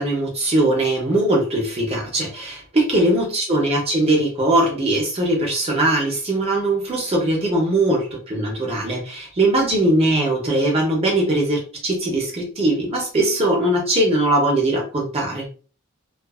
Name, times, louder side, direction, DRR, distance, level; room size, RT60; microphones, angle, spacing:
voice 1, 0.0-15.5, right 1 dB, 30° right, 0 dB, 0.8 m, -20 dB
2.5 x 2.4 x 2.3 m, 0.38 s
head